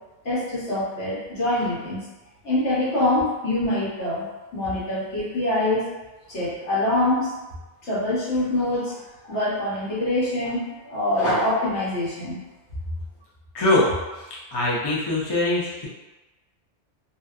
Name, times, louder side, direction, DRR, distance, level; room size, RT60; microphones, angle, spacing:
voice 1, 0.2-2.0 2.4-4.3 4.5-5.9 6.3-7.3 7.9-9.0 9.2-12.4, left 1 dB, 70° left, -8 dB, 1.2 m, -24 dB
voice 2, 13.5-13.9 14.2-14.3 14.5-15.9, left 2 dB, 35° left, -7 dB, 0.4 m, -22 dB
2.6 x 2.2 x 2.3 m, 1.1 s
omnidirectional pair, 1.2 m